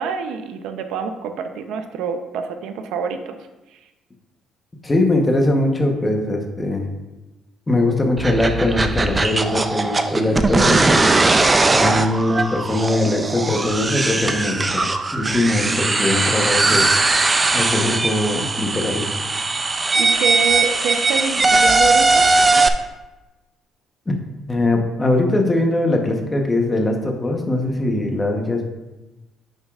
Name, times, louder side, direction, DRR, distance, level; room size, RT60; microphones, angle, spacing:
voice 1, 0.0-3.3 20.0-22.3, right 6 dB, 90° right, 7 dB, 0.6 m, -26 dB
voice 2, 4.8-6.9 7.7-11.1 11.7-16.9 17.5-19.1 24.5-28.6, left 2 dB, 15° left, 2 dB, 1.0 m, -21 dB
sound 1, 8.2-22.7, right 3 dB, 15° right, 0.4 m, -19 dB
9.5 x 6.9 x 2.4 m, 1.1 s
cardioid pair, 155°, 0 cm